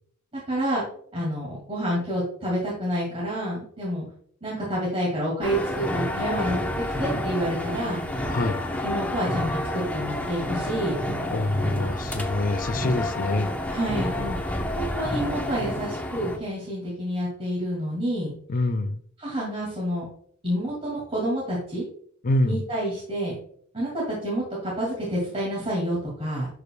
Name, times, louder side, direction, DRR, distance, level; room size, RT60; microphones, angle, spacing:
voice 1, 0.5-0.8 1.1-4.1 4.4-6.7 7.0-8.2 8.8-11.0 13.7-18.3 19.2-20.1 20.4-21.8 22.4-23.4 23.7-26.5, equal, 30° right, 2.2 m, -28 dB
sound 1, 5.4-16.4, left 1 dB, 5° left, 0.8 m, -29 dB
voice 2, 8.3-8.6 11.3-13.5 18.5-19.0 22.2-22.6, left 2 dB, 40° left, 0.5 m, -25 dB
11.5 x 4.9 x 2.2 m
head